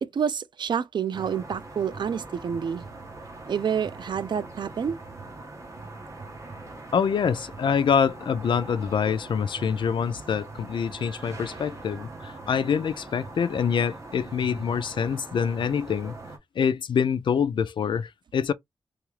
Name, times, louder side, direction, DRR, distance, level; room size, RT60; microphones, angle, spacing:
voice 1, 0.0-2.8 3.4-5.0, right 7 dB, 65° right, 0.4 m, -28 dB
sound 1, 1.1-16.4, right 2 dB, 35° right, 1.1 m, -42 dB
voice 2, 6.9-16.2 16.6-18.5, left 7 dB, 70° left, 0.3 m, -25 dB
3.1 x 2.4 x 3.1 m
wide cardioid pair, 140°, 8 cm